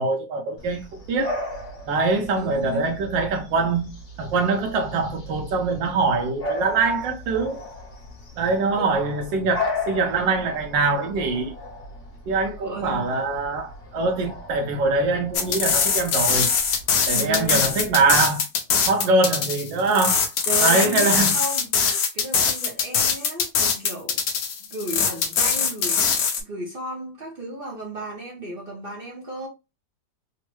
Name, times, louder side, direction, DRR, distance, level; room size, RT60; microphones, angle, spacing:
voice 1, 0.0-1.4 1.9-7.6 8.4-11.5 12.3-16.5 17.1-18.4 18.8-20.3 20.6-21.3, right 3 dB, 80° right, 1.3 m, -23 dB
Bark / Bird vocalization bird call bird song, 0.6-18.1, left 2 dB, 50° left, 1.2 m, -36 dB
voice 2, 2.3-2.9 8.8-8.9 12.5-13.1 17.1-17.7 20.5-21.7 22.1-24.2 24.6-29.5, right 2 dB, 50° right, 0.6 m, -34 dB
sound 1, 15.3-26.4, left 6 dB, 65° left, 1.0 m, -22 dB
3.5 x 2.1 x 3.0 m
omnidirectional pair, 2.0 m